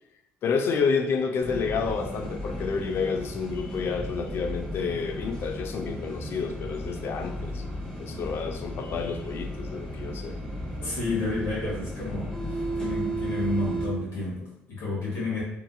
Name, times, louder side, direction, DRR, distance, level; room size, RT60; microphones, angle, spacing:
voice 1, 0.4-7.6 8.0-10.4, left 5 dB, 55° left, 6 dB, 0.3 m, -29 dB
sound 1, 1.4-13.9, equal, 10° left, 0.8 m, -34 dB
voice 2, 10.8-15.4, left 2 dB, 75° left, -7 dB, 1.1 m, -30 dB
2.7 x 2.5 x 2.2 m, 0.85 s
cardioid pair, 90°, 5 cm